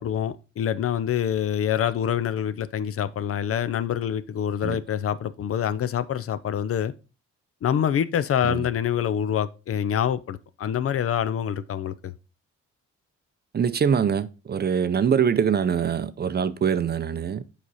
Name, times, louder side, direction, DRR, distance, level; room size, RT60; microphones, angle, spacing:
voice 1, 0.0-6.9 7.6-12.1, left 9 dB, 50° left, 0.5 m, -26 dB
voice 2, 13.5-17.4, right 7 dB, 35° right, 0.5 m, -23 dB
7.6 x 5.0 x 4.1 m
cardioid pair, 90°, 30 cm